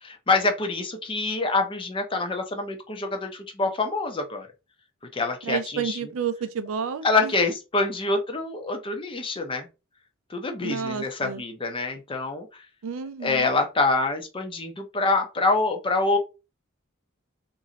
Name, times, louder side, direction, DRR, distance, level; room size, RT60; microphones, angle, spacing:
voice 1, 0.0-4.5 5.1-6.0 7.0-9.7 10.3-12.6 13.2-16.2, left 3 dB, 25° left, 0.5 m, -26 dB
voice 2, 5.4-7.5 10.6-11.4 12.8-13.5, right 6 dB, 70° right, 0.4 m, -31 dB
3.0 x 2.6 x 2.8 m
head